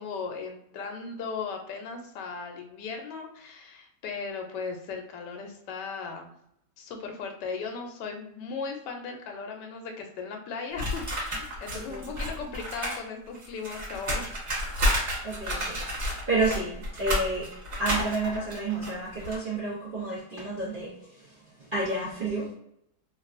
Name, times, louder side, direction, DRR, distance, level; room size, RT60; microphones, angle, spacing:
voice 1, 0.0-6.3 6.8-14.3, left 5 dB, 85° left, 4 dB, 1.2 m, -37 dB
sound 1, 10.8-13.0 13.3-19.4, equal, 40° right, 1.2 m, -31 dB
voice 2, 11.7-12.1 15.2-17.5 17.8-22.5, right 2 dB, 75° right, -6 dB, 0.4 m, -31 dB
3.1 x 2.3 x 2.4 m, 0.76 s
omnidirectional pair, 1.8 m